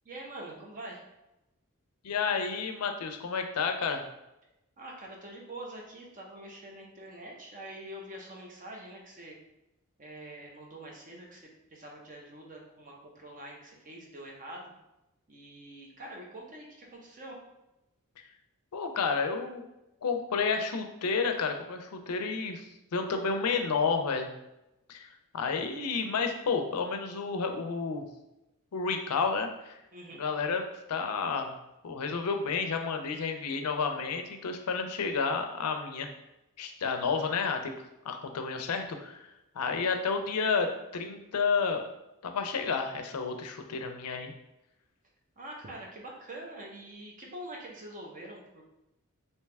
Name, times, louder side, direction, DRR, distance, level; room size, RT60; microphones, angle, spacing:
voice 1, 0.0-1.0 4.8-9.4 10.0-11.4 11.7-14.7 15.3-17.4 29.9-30.2 45.4-48.6, right 1 dB, 35° right, -1 dB, 0.8 m, -45 dB
voice 2, 2.0-4.1 18.7-19.6 20.0-22.6 22.9-24.3 24.9-25.1 25.3-28.0 28.7-29.7 30.2-30.6 30.9-31.5 31.8-36.1 36.6-37.7 38.0-39.2 39.6-41.8 42.2-44.3, left 5 dB, 85° left, 5 dB, 0.5 m, -30 dB
3.3 x 2.9 x 3.3 m, 0.93 s
head